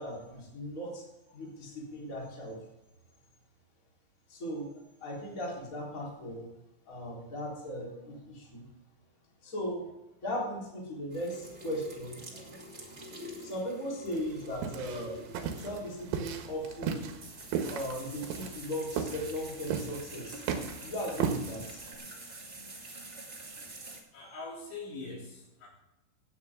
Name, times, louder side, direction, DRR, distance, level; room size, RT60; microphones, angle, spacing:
voice 1, 0.0-2.6 4.3-6.4 6.9-8.7 9.4-9.9 10.2-12.5 13.4-15.2 15.6-17.1 17.7-20.4 20.8-21.9, equal, 20° left, -4 dB, 3.8 m, -38 dB
sound 1, 11.1-24.0, right 1 dB, 30° right, 1.2 m, -47 dB
sound 2, 14.1-21.9, right 7 dB, 70° right, 3.1 m, -36 dB
voice 2, 24.1-25.7, left 3 dB, 70° left, -3 dB, 5.5 m, -42 dB
16.5 x 10.0 x 3.7 m, 0.95 s
omnidirectional pair, 5.2 m